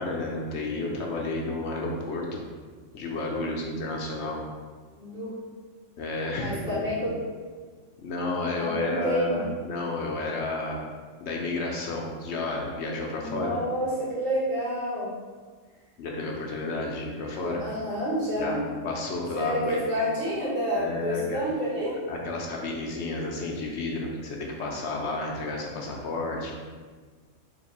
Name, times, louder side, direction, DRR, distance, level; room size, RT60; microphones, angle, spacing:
voice 1, 0.0-2.4 2.9-4.4 6.0-6.9 8.0-10.9 11.2-13.6 16.0-17.6 18.4-19.8 20.7-21.4 22.1-26.5, left 2 dB, 65° left, 0 dB, 0.9 m, -31 dB
voice 2, 3.2-3.6 4.9-5.3 6.4-7.2 8.5-9.5 13.1-15.1 17.4-18.6 19.3-22.0, equal, 85° right, -8 dB, 2.0 m, -29 dB
3.3 x 2.9 x 4.1 m, 1.5 s
omnidirectional pair, 1.3 m